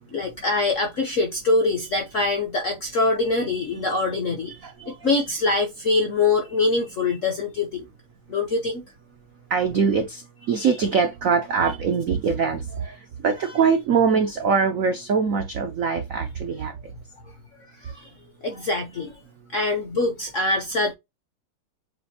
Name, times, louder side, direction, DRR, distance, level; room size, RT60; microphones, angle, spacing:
voice 1, 0.1-4.6 4.9-7.9 8.3-8.8 10.6-10.7 13.4-13.6 17.8-18.1 18.4-19.2 19.5-20.9, left 3 dB, 60° left, 0.8 m, -24 dB
voice 2, 4.6-4.9 9.5-13.0 13.2-16.7, right 5 dB, 75° right, 0.7 m, -23 dB
7.4 x 2.6 x 2.8 m
omnidirectional pair, 2.4 m